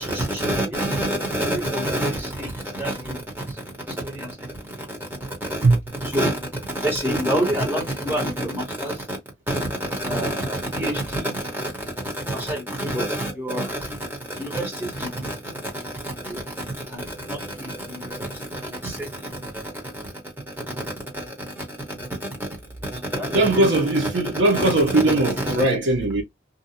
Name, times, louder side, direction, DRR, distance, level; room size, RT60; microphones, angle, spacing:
voice 1, 0.0-3.5 3.9-5.7 6.0-6.4 6.7-9.2 9.5-11.7 12.1-20.1 20.8-22.5 22.8-23.8 24.5-25.6, right 1 dB, 10° right, 1.0 m, -28 dB
voice 2, 23.3-26.2, right 2 dB, 90° right, 0.8 m, -19 dB
2.7 x 2.2 x 2.7 m
head